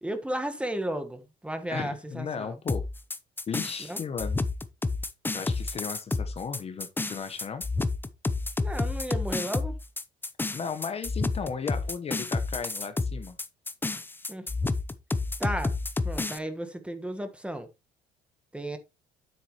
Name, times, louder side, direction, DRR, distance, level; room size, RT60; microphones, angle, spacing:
voice 1, 0.0-2.6 3.8-4.0 8.6-9.8 14.3-14.5 15.4-15.7 16.0-17.7 18.5-18.8, right 1 dB, 5° right, 1.4 m, -34 dB
voice 2, 1.7-2.9 3.5-4.4 5.3-7.6 10.5-13.4, left 6 dB, 35° left, 1.1 m, -35 dB
sound 1, 2.7-16.4, left 3 dB, 10° left, 0.6 m, -30 dB
9.5 x 7.8 x 3.0 m
cardioid pair, 110°, 17 cm